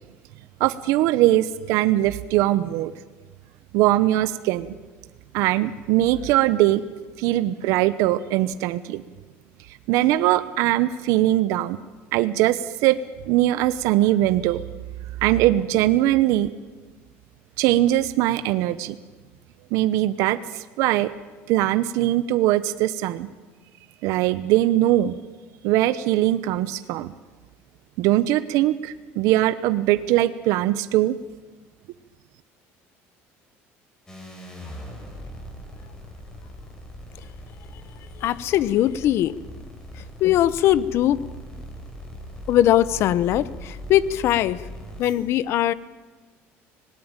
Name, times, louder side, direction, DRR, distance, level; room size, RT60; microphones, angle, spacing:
voice 1, 0.6-2.9 3.7-4.7 5.3-6.8 7.2-9.0 9.9-11.8 12.1-13.0 13.3-14.6 15.2-16.5 17.6-18.9 19.7-21.1 21.5-23.3 24.0-25.2 25.6-27.1 28.0-31.1, right 15 dB, 75° right, 13 dB, 0.9 m, -21 dB
sound 1, 34.1-45.1, equal, 10° left, 4.7 m, -40 dB
voice 2, 38.2-39.4 40.2-41.2 42.5-44.6 45.0-45.7, left 12 dB, 55° left, 18 dB, 0.9 m, -20 dB
25.5 x 19.0 x 8.9 m, 1.3 s
cardioid pair, 150°, 5 cm